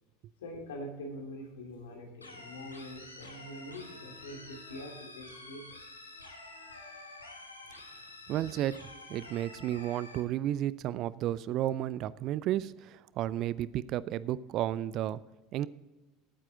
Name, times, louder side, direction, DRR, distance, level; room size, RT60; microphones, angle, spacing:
voice 1, 0.4-5.8 6.1-7.0, equal, 70° left, 2 dB, 2.6 m, -45 dB
sound 1, 2.2-10.2, left 2 dB, 90° left, 1.5 m, -49 dB
voice 2, 8.3-8.8 9.1-15.2 15.5-15.7, right 12 dB, 50° right, 19 dB, 0.4 m, -32 dB
14.0 x 9.0 x 3.7 m, 1.1 s
figure-of-eight pair, 70°, 0 cm